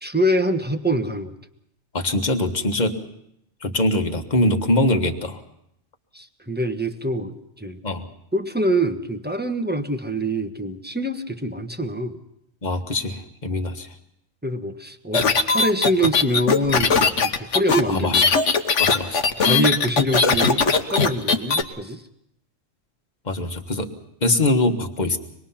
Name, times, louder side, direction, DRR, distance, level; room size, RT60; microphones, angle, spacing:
voice 1, 0.0-1.3 6.1-7.8 8.3-12.2 14.4-18.3 19.4-22.0, equal, 10° right, 6 dB, 1.2 m, -25 dB
voice 2, 1.9-3.0 3.6-5.4 7.8-8.0 12.6-13.9 17.9-18.3 18.8-19.2 23.2-23.9 24.2-25.2, left 1 dB, 35° left, 4 dB, 1.7 m, -22 dB
sound 1, 15.1-21.6, left 4 dB, 65° left, 1.5 m, -19 dB
26.0 x 20.5 x 5.8 m, 0.77 s
omnidirectional pair, 1.4 m